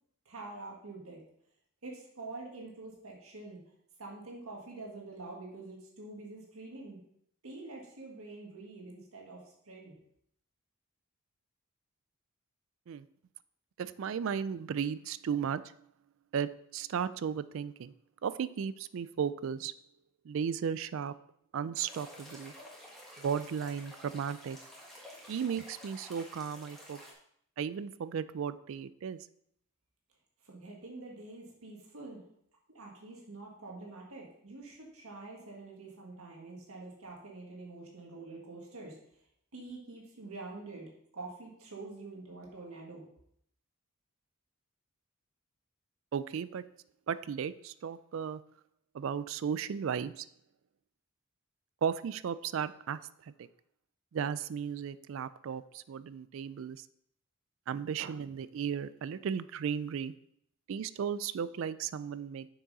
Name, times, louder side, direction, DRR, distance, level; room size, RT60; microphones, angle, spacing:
voice 1, 0.3-1.2 1.8-3.6 4.0-7.0 7.4-9.9 30.4-32.2 32.7-39.0 39.5-43.1, right 3 dB, 80° right, -2 dB, 1.7 m, -46 dB
voice 2, 13.8-15.6 16.3-17.9 18.2-19.7 20.3-21.1 21.5-22.5 23.2-24.6 25.3-27.0 27.6-29.2 46.1-46.6 47.1-48.4 48.9-50.3 51.8-53.0 53.3-53.5 54.1-56.8 57.7-60.1 60.7-62.5, right 7 dB, 65° right, 15 dB, 0.3 m, -35 dB
sound 1, 21.7-27.1, equal, ahead, 1.4 m, -51 dB
6.8 x 6.1 x 4.0 m, 0.69 s
head